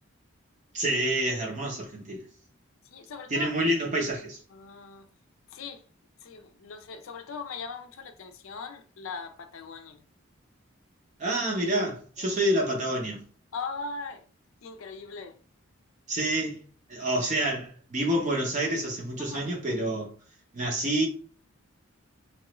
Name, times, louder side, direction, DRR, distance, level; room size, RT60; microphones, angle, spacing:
voice 1, 0.7-2.2 3.3-4.4 11.2-13.2 16.1-16.6 16.9-20.1 20.5-21.1, right 1 dB, 35° right, 0.6 m, -28 dB
voice 2, 2.8-3.5 4.5-5.1 5.5-5.8 6.2-10.0 12.2-12.4 13.5-14.2 14.6-15.4 19.2-19.5, left 4 dB, 70° left, 0.5 m, -40 dB
3.0 x 2.4 x 3.0 m
head